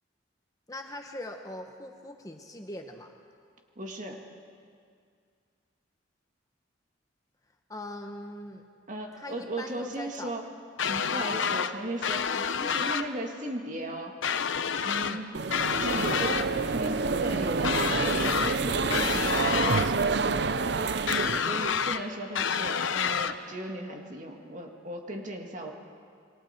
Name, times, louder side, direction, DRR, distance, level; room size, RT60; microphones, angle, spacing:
voice 1, 0.7-3.1 7.7-8.6 9.2-10.3 11.2-11.4 12.3-12.9 15.0-15.2, left 1 dB, 20° left, 4 dB, 1.0 m, -41 dB
voice 2, 3.8-4.2 8.9-10.4 10.9-14.2 14.8-15.3 15.7-20.7 21.4-25.7, right 1 dB, 40° right, 2 dB, 2.1 m, -37 dB
sound 1, 10.8-11.7 12.0-13.1 14.2-15.2 15.5-16.5 17.6-18.6 18.9-19.9 21.1-22.0 22.3-23.3, left 6 dB, 80° left, 0.7 m, -28 dB
sound 2, 15.3-21.4, right 4 dB, 60° right, 0.6 m, -28 dB
28.0 x 23.0 x 4.5 m, 2.2 s
head